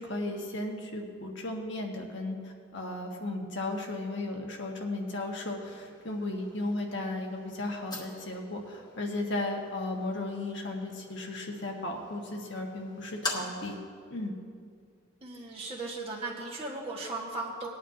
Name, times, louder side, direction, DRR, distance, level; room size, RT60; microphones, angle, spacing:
voice 1, 0.0-2.4 2.7-13.7 14.1-14.3, left 2 dB, 65° left, 0 dB, 1.6 m, -35 dB
sound 1, 5.5-13.8, left 2 dB, 20° left, 1.6 m, -44 dB
voice 2, 15.2-17.7, right 3 dB, 30° right, -4 dB, 1.6 m, -37 dB
20.5 x 9.5 x 2.8 m, 2.1 s
head